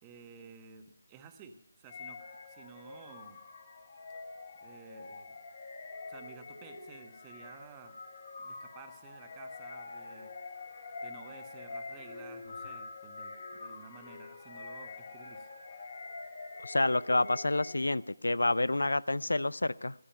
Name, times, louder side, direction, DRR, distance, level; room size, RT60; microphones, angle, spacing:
voice 1, 0.0-3.4 4.6-5.4 6.1-8.0 8.4-10.3 11.0-15.5, right 6 dB, 15° right, 7 dB, 1.1 m, -53 dB
sound 1, 1.9-18.1, left 3 dB, 50° left, 3.2 m, -46 dB
voice 2, 16.6-19.9, left 2 dB, 80° left, 21 dB, 0.5 m, -28 dB
15.5 x 11.0 x 5.6 m, 0.77 s
figure-of-eight pair, 160°, 0 cm